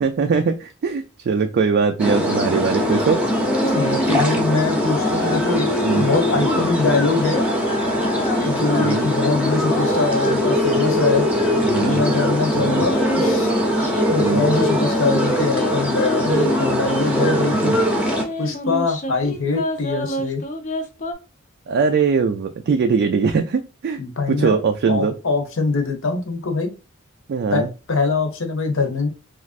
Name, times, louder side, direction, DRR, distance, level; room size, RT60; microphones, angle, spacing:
voice 1, 0.0-3.2 5.8-6.1 8.8-9.0 11.6-12.1 12.5-12.9 14.2-14.4 17.5-17.8 21.7-24.0 24.3-25.1 27.3-27.7, right 5 dB, 50° right, 5 dB, 0.3 m, -21 dB
sound 1, 2.0-18.2, equal, 5° right, 0.7 m, -21 dB
sound 2, 3.5-4.4 4.8-6.7 7.2-12.1 12.7-17.4 17.9-21.1, left 1 dB, 35° left, 0.5 m, -27 dB
voice 2, 3.7-5.7 5.9-7.4 8.4-11.3 11.5-13.5 14.1-17.7 18.4-20.4 24.0-24.6 24.9-26.7 27.5-29.1, left 3 dB, 70° left, 5 dB, 0.9 m, -23 dB
3.2 x 2.4 x 2.4 m, 0.32 s
head